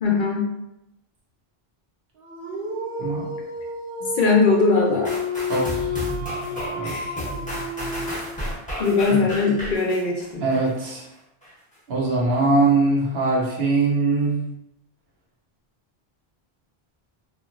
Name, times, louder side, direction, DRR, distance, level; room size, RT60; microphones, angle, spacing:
voice 1, 0.0-0.5 4.2-5.1 6.8-7.2 8.8-10.4, left 4 dB, 60° left, -1 dB, 0.7 m, -20 dB
Dog, 2.2-8.6, left 2 dB, 60° right, 0.7 m, -30 dB
sound 1, 5.0-10.9 11.4-11.5, equal, 10° left, 0.9 m, -33 dB
voice 2, 5.5-5.9 6.8-6.9 10.4-11.1 11.9-14.4, right 3 dB, 80° right, -3 dB, 1.0 m, -21 dB
2.9 x 2.5 x 2.4 m, 0.88 s
omnidirectional pair, 1.0 m